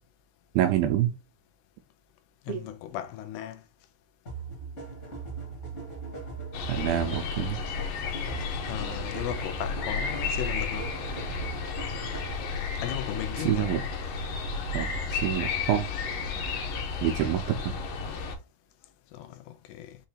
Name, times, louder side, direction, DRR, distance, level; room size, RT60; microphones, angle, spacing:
voice 1, 0.6-1.1 2.5-2.7 6.7-7.6 13.4-13.8 14.7-15.9 17.0-17.8, right 11 dB, 85° right, 2.1 m, -27 dB
voice 2, 2.5-3.6 8.7-10.9 12.8-13.8 19.1-20.0, left 12 dB, 85° left, 2.6 m, -36 dB
sound 1, 4.3-12.7, right 4 dB, 40° left, 1.0 m, -40 dB
sound 2, 6.5-18.4, left 5 dB, 70° left, 2.2 m, -32 dB
6.6 x 2.7 x 2.8 m
omnidirectional pair, 4.6 m